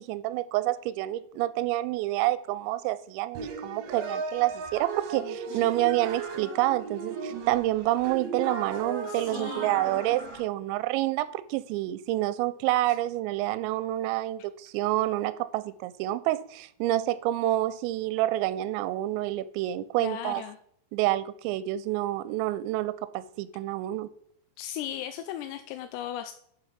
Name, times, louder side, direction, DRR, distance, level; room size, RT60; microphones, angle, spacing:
voice 1, 0.0-20.5 20.9-24.1, right 15 dB, 85° right, 2.8 m, -28 dB
sound 1, 3.3-10.4, right 5 dB, 65° right, 2.8 m, -36 dB
voice 2, 5.2-5.7 9.1-9.8 12.9-13.0 20.0-20.6 24.6-26.3, left 11 dB, 85° left, 2.6 m, -37 dB
7.2 x 6.9 x 5.8 m
omnidirectional pair, 5.2 m